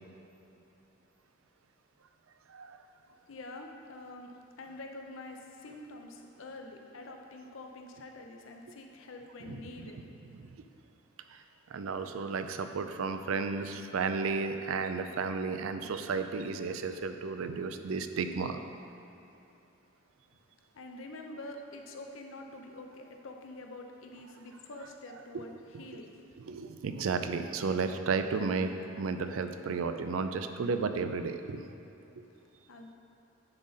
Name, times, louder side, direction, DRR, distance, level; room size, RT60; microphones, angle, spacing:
voice 1, 3.1-4.3 4.6-10.0 20.7-26.1 32.7-32.9, left 2 dB, 80° left, 3 dB, 0.6 m, -46 dB
voice 2, 9.4-9.9 10.4-10.5 11.3-11.4 11.7-18.6 25.7-25.8 26.5-31.6, right 4 dB, 85° right, 8 dB, 0.4 m, -33 dB
9.8 x 4.0 x 3.9 m, 2.9 s
head